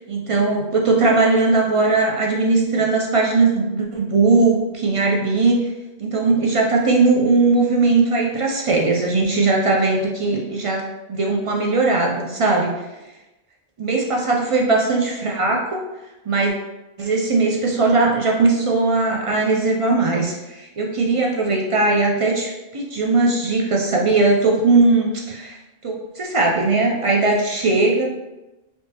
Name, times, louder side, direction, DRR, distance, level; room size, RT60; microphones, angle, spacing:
voice 1, 0.0-5.7 6.0-12.8 13.8-15.8 16.3-16.5 17.0-25.6 25.8-28.1, right 3 dB, 55° right, 0 dB, 0.3 m, -19 dB
3.5 x 2.9 x 2.8 m, 1.0 s
omnidirectional pair, 1.1 m